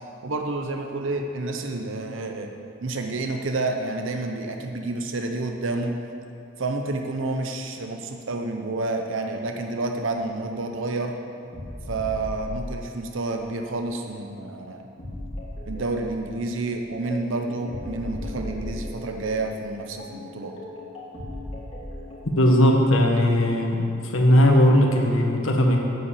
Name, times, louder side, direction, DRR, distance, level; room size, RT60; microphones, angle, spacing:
voice 1, 0.2-2.5 2.8-6.0 6.6-11.1 11.9-14.9 15.7-20.6, right 2 dB, 70° right, 4 dB, 0.7 m, -29 dB
sound 1, 11.5-13.3 15.0-22.3, left 1 dB, 30° left, 2.1 m, -37 dB
voice 2, 22.3-23.8 24.0-25.8, left 1 dB, 80° left, 0 dB, 1.5 m, -18 dB
8.1 x 7.4 x 8.3 m, 2.7 s
head